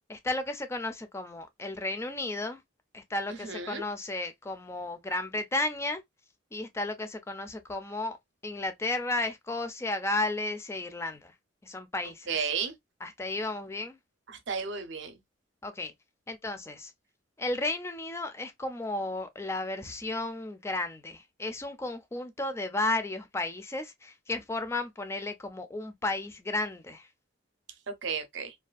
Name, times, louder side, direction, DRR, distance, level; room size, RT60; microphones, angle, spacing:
voice 1, 0.1-2.6 2.9-6.0 6.5-8.2 8.4-11.3 11.6-12.3 13.0-14.0 15.6-15.9 16.3-16.9 17.4-27.1, left 2 dB, 15° left, 0.3 m, -33 dB
voice 2, 3.4-3.8 12.3-12.7 14.3-15.2 27.9-28.5, right 6 dB, 60° right, 0.6 m, -33 dB
2.5 x 2.3 x 2.3 m
head